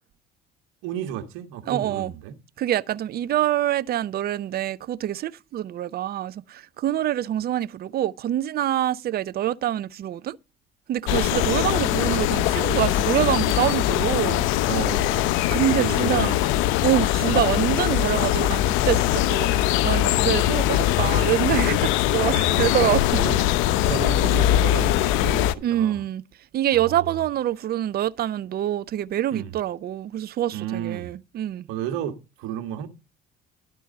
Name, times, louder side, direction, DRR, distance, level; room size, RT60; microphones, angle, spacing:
voice 1, 0.8-2.4 11.3-12.0 14.7-16.7 23.1-23.4 23.9-26.0 26.7-27.2 29.3-29.5 30.5-31.1 31.7-32.9, right 10 dB, 75° right, 1.6 m, -33 dB
voice 2, 1.7-2.1 2.6-10.4 10.9-14.5 15.5-16.4 16.8-23.2 25.6-26.2 26.5-31.7, right 12 dB, 50° right, 0.6 m, -25 dB
sound 1, 11.1-25.5, left 14 dB, 75° left, 0.7 m, -22 dB
12.0 x 4.6 x 6.5 m
supercardioid pair, 75°, 21 cm